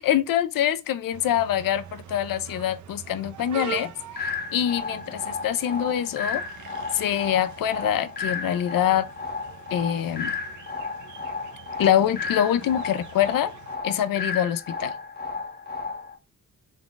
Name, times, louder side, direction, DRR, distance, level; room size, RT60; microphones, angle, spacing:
voice 1, 0.0-3.9 4.2-6.4 6.9-9.1 9.7-10.4 11.8-13.5 13.8-14.9, left 10 dB, 75° left, 0.5 m, -24 dB
sound 1, 1.1-13.8, right 9 dB, 60° right, 0.5 m, -43 dB
sound 2, 4.2-16.2, left 4 dB, 30° left, 0.6 m, -33 dB
3.6 x 2.3 x 3.8 m
cardioid pair, 80°, 34 cm